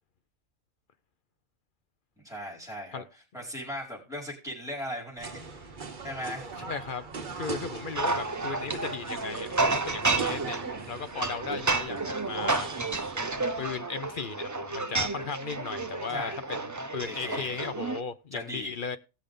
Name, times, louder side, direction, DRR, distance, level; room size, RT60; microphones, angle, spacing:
voice 1, 2.2-3.0 3.3-5.7 6.0-6.5 16.1-16.5 17.1-17.6 18.3-18.7, equal, ahead, 4.9 m, -38 dB
sound 1, 5.2-13.6, right 4 dB, 40° right, 1.1 m, -41 dB
voice 2, 6.7-7.1 7.3-10.6 10.9-12.7 13.6-19.0, left 5 dB, 50° left, 0.7 m, -36 dB
sound 2, 8.0-18.0, right 3 dB, 25° right, 0.4 m, -31 dB
18.0 x 6.8 x 3.8 m
omnidirectional pair, 1.4 m